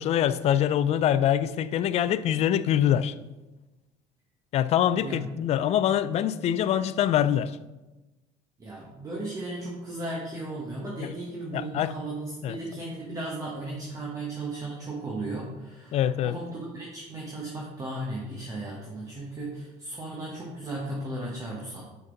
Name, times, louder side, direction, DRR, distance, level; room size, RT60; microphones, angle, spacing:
voice 1, 0.0-3.1 4.5-7.6 11.0-11.1 11.5-11.9 12.4-12.6 15.9-16.4, left 10 dB, 50° left, 0.4 m, -24 dB
voice 2, 8.6-21.8, right 2 dB, 25° right, 1.3 m, -36 dB
6.4 x 5.9 x 3.9 m
cardioid pair, 110°, 14 cm